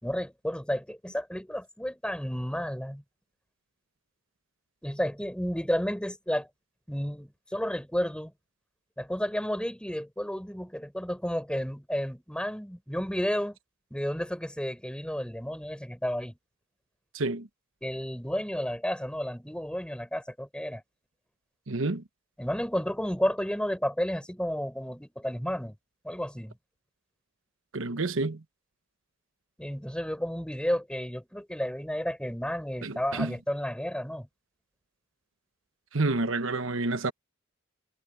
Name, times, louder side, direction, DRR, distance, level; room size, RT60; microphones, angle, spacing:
voice 1, 0.0-3.0 4.8-6.5 6.9-8.3 9.0-13.6 13.9-16.4 17.8-20.8 22.4-25.7 26.0-26.5 29.6-34.3, equal, 5° left, 5.7 m, -32 dB
voice 2, 17.1-17.5 21.7-22.0 27.7-28.4 32.8-33.3 35.9-37.1, right 3 dB, 90° right, 1.1 m, -29 dB
head